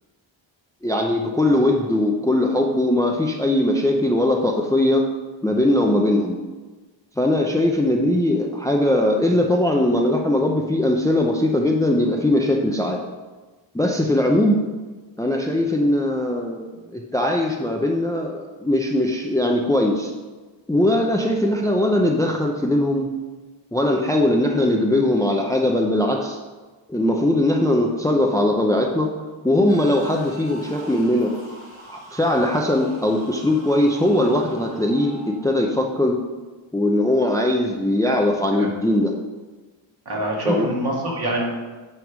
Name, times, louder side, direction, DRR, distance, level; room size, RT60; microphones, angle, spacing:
voice 1, 0.8-5.1 5.4-6.4 7.2-13.0 13.7-14.6 15.2-20.1 20.7-23.1 23.7-26.4 26.9-29.1 29.4-31.3 31.9-36.2 36.7-39.1 40.4-40.6, left 1 dB, 5° left, 2 dB, 0.5 m, -20 dB
sound 1, 29.7-35.3, right 1 dB, 75° right, 2.0 m, -42 dB
voice 2, 40.1-41.5, right 1 dB, 50° right, -2 dB, 2.0 m, -25 dB
9.2 x 3.5 x 6.0 m, 1.3 s
wide cardioid pair, 125°, 47 cm